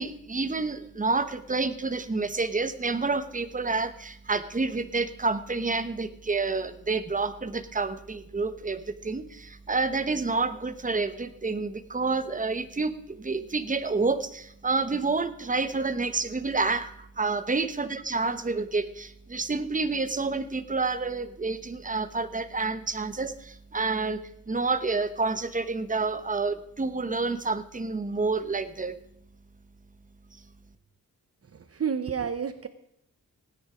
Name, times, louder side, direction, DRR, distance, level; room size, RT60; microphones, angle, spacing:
voice 1, 0.0-24.2 24.5-29.0, right 3 dB, 25° right, 11 dB, 1.1 m, -29 dB
voice 2, 31.4-32.7, right 7 dB, 45° right, 11 dB, 0.8 m, -30 dB
17.0 x 9.9 x 5.1 m, 0.74 s
wide cardioid pair, 110°, 34 cm